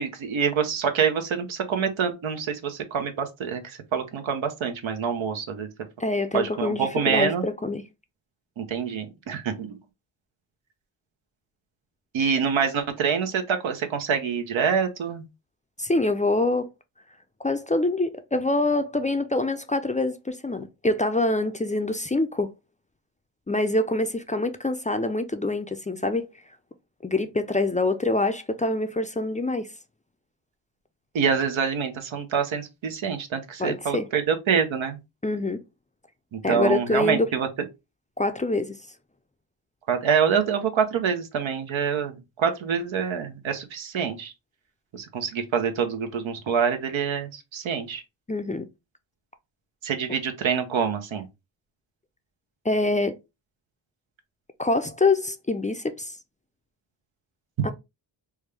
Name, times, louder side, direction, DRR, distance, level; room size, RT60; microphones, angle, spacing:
voice 1, 0.0-5.7 6.3-7.4 8.6-9.8 12.1-15.2 31.1-35.0 36.3-37.5 39.9-44.3 44.9-48.0 49.8-51.3, right 6 dB, 80° right, 0.8 m, -26 dB
voice 2, 6.0-7.8 15.8-16.7 17.4-22.5 23.5-26.3 27.0-29.7 33.6-34.1 35.2-35.6 36.4-37.3 38.2-38.8 48.3-48.7 52.6-53.2 54.6-56.2 57.6-57.7, left 2 dB, 15° left, 0.4 m, -25 dB
3.5 x 2.2 x 3.3 m
cardioid pair, 45°, 46 cm